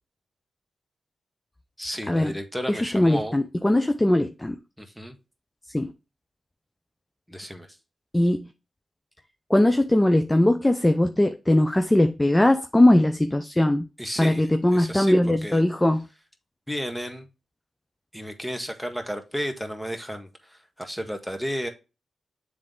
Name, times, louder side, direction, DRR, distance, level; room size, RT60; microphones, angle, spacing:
voice 1, 1.8-3.3 4.8-5.1 7.3-7.8 14.0-15.6 16.7-17.3 18.1-21.7, equal, ahead, 1.6 m, -33 dB
voice 2, 2.7-4.6 5.7-5.9 8.1-8.5 9.5-13.9 14.2-16.1, left 1 dB, 15° left, 0.6 m, -20 dB
7.6 x 3.6 x 3.7 m
supercardioid pair, 45°, 0 cm